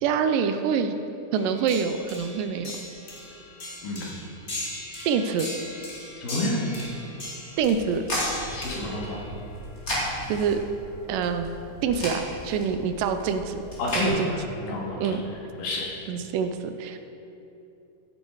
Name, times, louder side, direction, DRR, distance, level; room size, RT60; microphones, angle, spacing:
voice 1, 0.0-0.9 1.3-2.7 5.1-5.6 7.6-8.0 10.3-10.6 11.1-11.5 11.8-13.6 14.0-14.3 15.0-15.2 16.1-17.1, right 6 dB, 80° right, 8 dB, 2.2 m, -26 dB
sound 1, 1.3-10.5 12.6-12.7 13.5-13.7 14.9-15.3 15.9-16.0, left 1 dB, 55° left, 0.5 m, -39 dB
voice 2, 6.2-6.5 8.5-9.2 13.8-14.2 14.6-15.1 15.6-15.9, left 2 dB, 75° left, -3 dB, 3.6 m, -29 dB
sound 2, 7.6-14.1, equal, 20° left, 2.9 m, -35 dB
15.0 x 8.2 x 4.8 m, 2.8 s
omnidirectional pair, 3.9 m